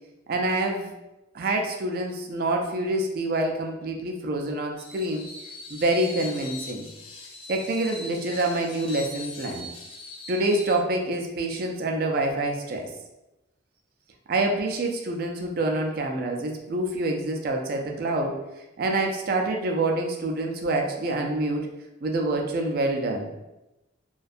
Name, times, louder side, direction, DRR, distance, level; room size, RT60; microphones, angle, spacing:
voice 1, 0.3-0.9 1.3-5.3 5.7-6.9 7.5-9.7 10.3-12.9 14.3-18.4 18.8-21.7 22.0-23.3, right 2 dB, 50° right, 3 dB, 0.3 m, -26 dB
Screech, 4.8-10.8, left 2 dB, 30° left, 0.3 m, -41 dB
2.6 x 2.2 x 2.4 m, 0.96 s
head